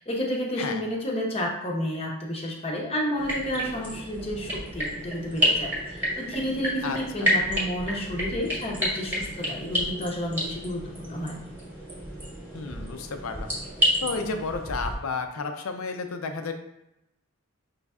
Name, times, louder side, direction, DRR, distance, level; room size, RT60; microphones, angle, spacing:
voice 1, 0.0-11.4, equal, 25° left, -1 dB, 0.7 m, -31 dB
sound 1, 3.2-14.9, equal, 10° right, 0.9 m, -30 dB
voice 2, 6.8-7.3 12.5-13.5 14.0-16.5, left 4 dB, 70° left, 6 dB, 0.5 m, -32 dB
5.3 x 3.2 x 2.4 m, 0.88 s
head